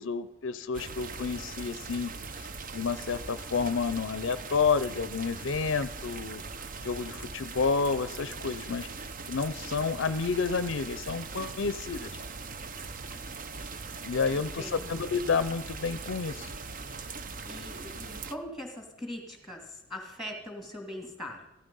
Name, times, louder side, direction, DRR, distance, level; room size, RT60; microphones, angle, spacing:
voice 1, 0.0-6.4 6.8-12.2 14.0-16.5, left 5 dB, 60° left, 14 dB, 0.5 m, -30 dB
sound 1, 0.7-18.3, right 4 dB, 40° right, 0.6 m, -41 dB
voice 2, 14.4-15.0 17.5-21.5, left 1 dB, ahead, 3 dB, 2.4 m, -41 dB
15.0 x 12.5 x 5.4 m, 0.90 s
head